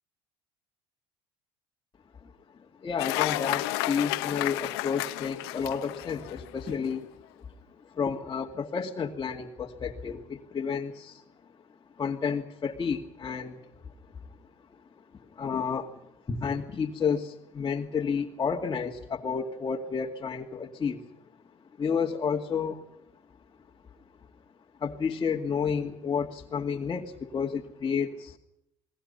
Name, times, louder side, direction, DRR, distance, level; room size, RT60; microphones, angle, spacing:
voice 1, 2.6-7.1 7.8-11.2 12.0-13.7 15.4-16.0 16.3-21.0 21.8-22.8 24.8-28.4, left 6 dB, 30° left, -1 dB, 2.4 m, -31 dB
Cheering / Applause, 3.0-6.7, left 18 dB, 85° left, 1.5 m, -31 dB
29.5 x 21.0 x 5.5 m, 0.83 s
supercardioid pair, 95°, 13 cm